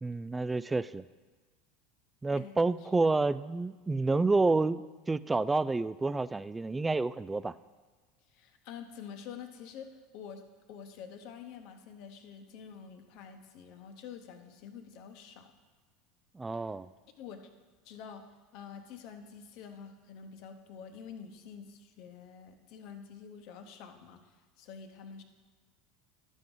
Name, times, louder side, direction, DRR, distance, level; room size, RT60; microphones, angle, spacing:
voice 1, 0.0-1.0 2.2-7.5 16.4-16.9, right 3 dB, 15° right, 16 dB, 0.3 m, -29 dB
voice 2, 2.3-2.9 8.3-15.5 16.5-16.7 17.2-17.5 17.8-18.2 18.5-25.2, left 7 dB, 55° left, 6 dB, 0.9 m, -48 dB
11.5 x 6.3 x 3.8 m, 1.4 s
figure-of-eight pair, 75°, 0 cm